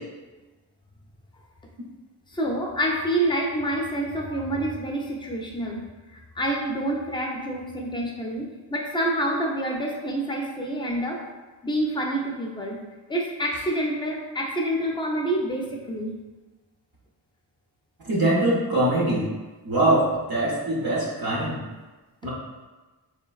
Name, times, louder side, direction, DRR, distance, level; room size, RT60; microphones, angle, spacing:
voice 1, 2.3-5.8 6.3-11.2 11.6-12.8 13.1-16.1, right 1 dB, 10° left, -1 dB, 0.4 m, -27 dB
voice 2, 18.1-19.3 19.6-21.6 22.2-22.3, right 1 dB, 60° right, -5 dB, 0.8 m, -23 dB
3.2 x 2.0 x 2.3 m, 1.2 s
cardioid pair, 60°, 41 cm